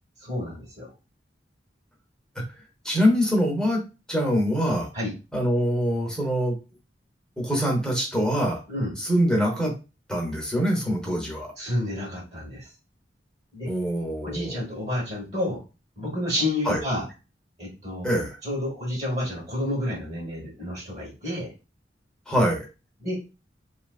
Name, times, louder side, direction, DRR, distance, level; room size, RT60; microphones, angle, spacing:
voice 1, 0.2-0.9 4.9-5.1 8.7-8.9 11.6-12.7 13.5-13.7 14.2-15.6 16.0-17.1 17.6-18.1 18.4-21.5 23.0-23.2, left 1 dB, 40° right, -3 dB, 1.1 m, -30 dB
voice 2, 2.8-3.8 4.1-4.9 5.3-6.6 7.4-8.6 9.0-9.7 10.1-11.5 13.7-14.6 16.6-16.8 18.0-18.4 22.3-22.7, equal, 5° left, -1 dB, 0.7 m, -24 dB
2.8 x 2.5 x 2.4 m, 0.30 s
head